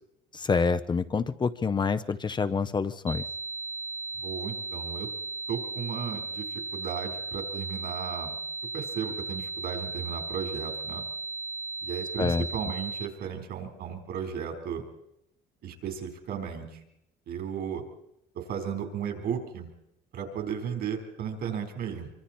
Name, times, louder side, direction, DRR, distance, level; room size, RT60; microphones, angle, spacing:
voice 1, 0.3-3.2 12.2-12.5, left 5 dB, 25° left, 11 dB, 0.7 m, -27 dB
sound 1, 3.1-13.1, right 3 dB, 20° right, 1.1 m, -36 dB
voice 2, 4.1-5.1 5.5-8.4 8.7-11.0 11.8-14.8 15.6-16.8 17.3-17.8 18.3-19.7 20.1-22.1, right 7 dB, 70° right, 5 dB, 4.2 m, -35 dB
25.0 x 24.5 x 4.4 m, 0.79 s
cardioid pair, 110°, 17 cm